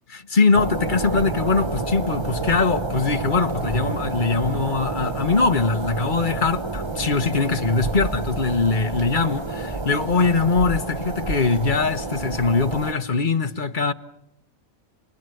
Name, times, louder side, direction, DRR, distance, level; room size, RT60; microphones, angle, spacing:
voice 1, 0.1-13.9, left 4 dB, 40° left, 1.3 m, -22 dB
sound 1, 0.5-12.9, right 3 dB, 20° right, 1.0 m, -29 dB
29.5 x 20.5 x 9.2 m
omnidirectional pair, 1.4 m